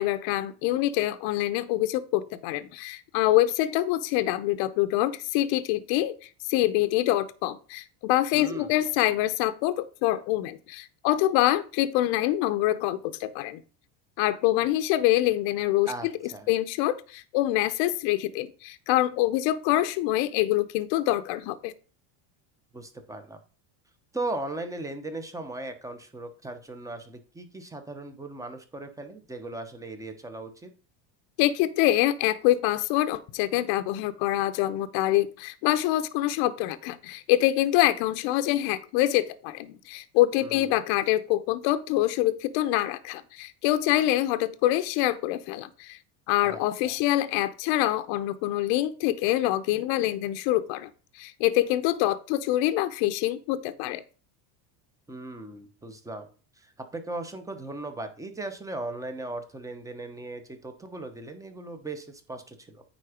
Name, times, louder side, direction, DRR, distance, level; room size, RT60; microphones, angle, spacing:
voice 1, 0.0-6.2 6.5-13.6 14.2-15.9 16.5-21.7 31.4-46.0 46.3-50.9 51.1-54.0, left 14 dB, 60° left, 10 dB, 0.8 m, -25 dB
voice 2, 8.3-8.8 15.9-16.5 22.7-23.4 24.1-30.7 40.4-40.7 46.4-46.6 46.8-46.9 55.1-56.3 56.6-62.8, right 2 dB, 5° right, 8 dB, 0.9 m, -38 dB
9.3 x 3.9 x 5.0 m, 0.37 s
cardioid pair, 140°, 50 cm